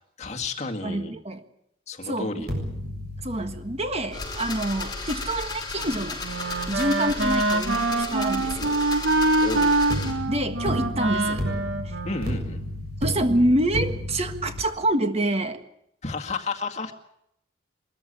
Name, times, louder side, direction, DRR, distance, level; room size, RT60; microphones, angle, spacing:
voice 1, 0.2-1.2 1.9-2.5 9.4-9.7 12.0-12.6 16.0-16.9, left 3 dB, 35° left, 3 dB, 2.1 m, -31 dB
voice 2, 0.8-1.4 2.0-2.4 3.2-6.2 6.7-8.7 10.3-11.4 11.8-11.9 13.0-15.6, right 1 dB, 35° right, 8 dB, 1.6 m, -26 dB
sound 1, 2.4-7.5 9.9-14.6, equal, 55° right, 7.2 m, -34 dB
sound 2, 4.1-10.1, left 3 dB, 20° left, 5.4 m, -34 dB
Wind instrument woodwind instrument, 5.7-12.9, right 2 dB, 90° right, 2.3 m, -25 dB
23.0 x 14.5 x 10.0 m, 0.77 s
head